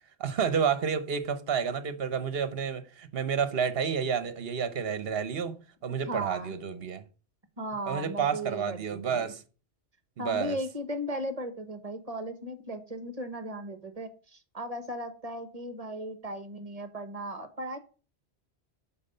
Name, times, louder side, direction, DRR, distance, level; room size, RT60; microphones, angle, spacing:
voice 1, 0.2-5.5 5.8-7.0 7.9-9.4 10.2-10.6, right 7 dB, 60° right, 1.2 m, -30 dB
voice 2, 6.1-6.5 7.6-9.3 10.2-17.8, right 1 dB, 35° right, 1.3 m, -37 dB
9.5 x 4.4 x 6.7 m
omnidirectional pair, 1.1 m